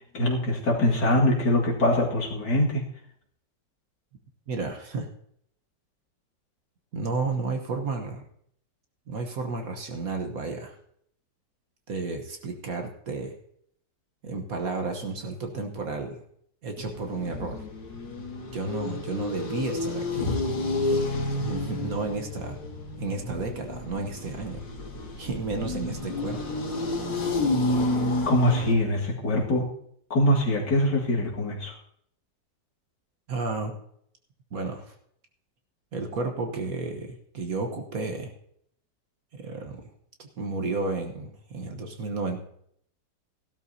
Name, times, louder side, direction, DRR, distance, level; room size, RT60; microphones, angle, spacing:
voice 1, 0.1-2.8 28.3-29.7 30.1-31.7, left 1 dB, 65° left, -2 dB, 2.5 m, -23 dB
voice 2, 4.5-5.1 6.9-8.2 9.1-10.8 11.9-13.3 14.2-16.2 16.6-17.6 18.5-20.4 20.8-22.6 23.0-24.6 25.2-26.4 33.3-33.8 34.5-34.9 35.9-38.3 39.3-39.8 40.2-42.4, right 3 dB, 55° right, 3 dB, 1.5 m, -32 dB
sound 1, 16.8-28.7, left 2 dB, 85° left, 3.1 m, -30 dB
16.0 x 12.0 x 2.7 m, 0.68 s
omnidirectional pair, 2.0 m